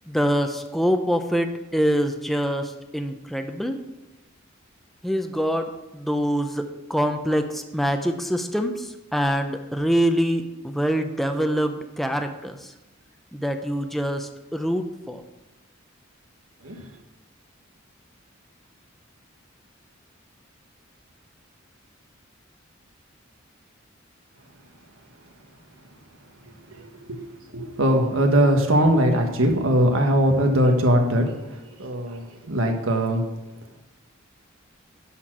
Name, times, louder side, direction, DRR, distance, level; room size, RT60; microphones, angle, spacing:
voice 1, 0.1-3.8 5.0-12.7 13.3-15.2, equal, ahead, 5 dB, 0.6 m, -25 dB
voice 2, 26.7-27.2 27.5-31.3 31.8-33.2, equal, 90° right, 3 dB, 1.4 m, -20 dB
11.0 x 4.4 x 6.1 m, 1.0 s
head